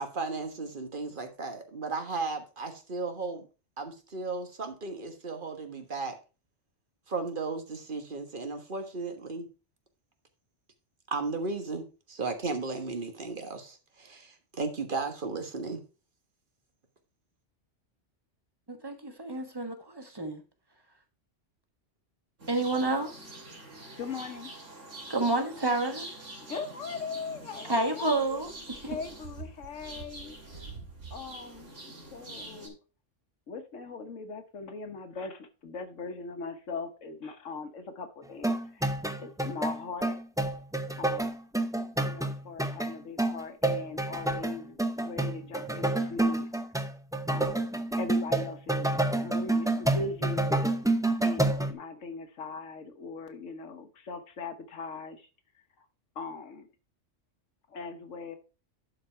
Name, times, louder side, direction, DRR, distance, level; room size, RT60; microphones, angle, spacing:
voice 1, 0.0-3.5 3.8-6.2 7.1-9.5 11.1-15.8, right 3 dB, 45° right, 6 dB, 1.6 m, -35 dB
voice 2, 18.7-20.4 22.5-23.1 25.1-26.1 27.6-28.5, right 2 dB, 20° right, 6 dB, 1.4 m, -29 dB
sound 1, 22.4-32.7, right 2 dB, 80° right, 2.9 m, -45 dB
voice 3, 24.0-24.5 26.4-28.4 28.8-30.7 31.1-31.7 32.1-32.8 33.5-38.9 39.2-40.2 41.0-41.3 42.0-46.4 47.3-47.6 48.0-50.5 51.2-55.3 55.8-55.9 56.1-56.7 57.7-58.4, left 4 dB, 85° left, 6 dB, 1.5 m, -40 dB
sound 2, 38.4-51.7, right 2 dB, 5° right, 0.5 m, -28 dB
11.0 x 4.6 x 4.4 m, 0.32 s
omnidirectional pair, 1.3 m